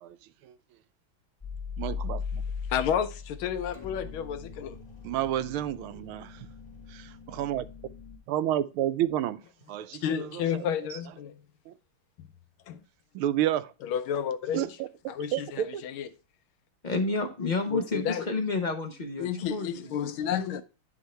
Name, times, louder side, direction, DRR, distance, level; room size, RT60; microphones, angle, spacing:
sound 1, 1.4-8.2, left 5 dB, 20° left, 2.5 m, -39 dB
voice 1, 1.8-2.4 5.0-6.4 6.9-7.7 8.3-9.4 9.7-10.4 11.7-11.8 13.1-13.7 14.5-14.9 15.3-15.8, right 12 dB, 80° right, 1.5 m, -30 dB
voice 2, 2.7-4.8 10.0-11.4 12.7-12.8 13.8-14.8 15.1-16.1 17.4-18.3 19.2-20.6, left 8 dB, 75° left, 1.5 m, -31 dB
voice 3, 16.8-19.9, left 3 dB, 45° left, 0.6 m, -30 dB
11.0 x 3.7 x 4.3 m
omnidirectional pair, 2.3 m